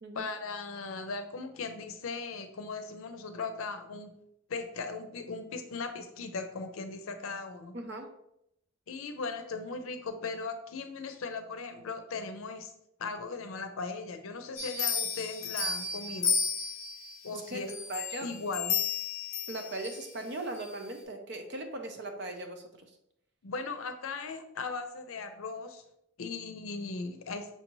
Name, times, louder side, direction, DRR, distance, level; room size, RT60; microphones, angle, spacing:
voice 1, 0.1-4.1 4.5-7.8 8.9-12.7 13.0-16.4 17.2-17.7 18.2-18.8 23.4-25.8 26.2-27.5, left 4 dB, 75° left, 8 dB, 0.5 m, -38 dB
voice 2, 7.7-8.1 17.3-17.6 17.9-18.3 19.5-22.6, right 2 dB, 55° right, 5 dB, 0.6 m, -38 dB
sound 1, 14.6-17.1 17.7-20.0 20.5-20.7, left 6 dB, 35° left, 0.7 m, -32 dB
5.7 x 2.7 x 3.0 m, 0.76 s
head